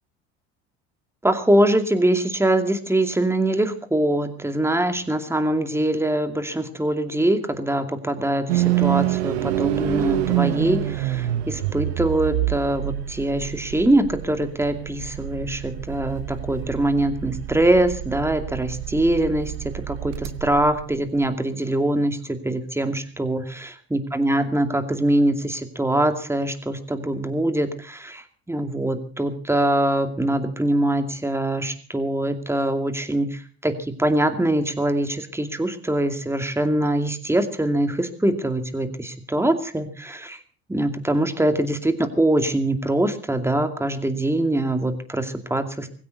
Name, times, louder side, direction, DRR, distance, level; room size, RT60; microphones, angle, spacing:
voice 1, 1.2-40.4 40.7-45.9, right 1 dB, 10° right, 7 dB, 2.4 m, -23 dB
sound 1, 8.5-21.6, right 15 dB, 80° right, 0.9 m, -27 dB
18.5 x 16.5 x 4.1 m, 0.41 s
hypercardioid pair, 75°, 33 cm